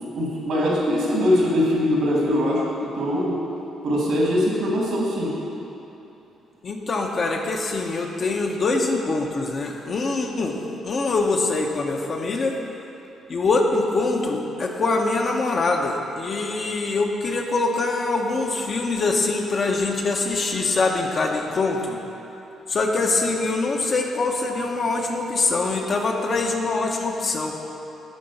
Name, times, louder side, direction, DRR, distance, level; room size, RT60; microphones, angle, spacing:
voice 1, 0.0-2.6 3.0-3.3 3.8-5.3, left 1 dB, 80° right, -4 dB, 2.2 m, -22 dB
voice 2, 6.6-10.6 10.8-12.6 13.3-22.0 22.7-27.6, left 3 dB, 45° left, 1 dB, 1.0 m, -24 dB
11.0 x 3.9 x 7.1 m, 2.9 s
cardioid pair, 90°, 0 cm